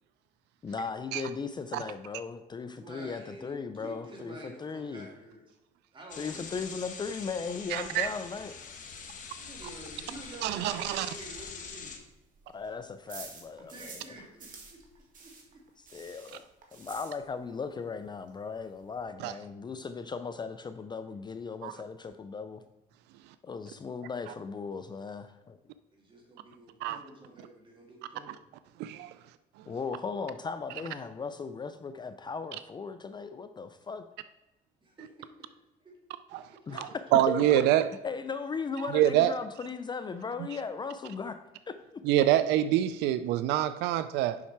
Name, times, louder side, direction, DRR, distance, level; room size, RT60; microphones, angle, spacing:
voice 1, 0.6-5.1 6.2-8.6 12.5-14.1 15.8-16.4 16.7-22.6 23.4-25.6 29.7-34.0 36.7-36.9 37.3-37.6 38.0-41.4 41.7-42.0, left 5 dB, 25° left, 0.5 m, -37 dB
voice 2, 2.8-5.5 5.9-6.8 9.4-12.0 13.6-15.6 16.1-16.2 25.9-28.4 34.8-36.0 36.7-36.8 37.1-37.2, right 1 dB, 30° right, 2.5 m, -49 dB
sound 1, 6.1-12.0, left 5 dB, 50° left, 1.2 m, -44 dB
voice 3, 7.7-8.1 10.4-11.1 19.2-19.3 21.6-21.7 26.8-27.0 28.8-29.1 36.3-36.4 36.8-37.8 38.9-39.3 42.0-44.4, right 12 dB, 90° right, 0.4 m, -25 dB
sound 2, 11.3-14.1 14.4-17.6 17.9-18.0 18.3-18.4 18.6-19.0, right 4 dB, 50° right, 1.8 m, -49 dB
7.2 x 5.8 x 4.5 m
cardioid pair, 110°, 17 cm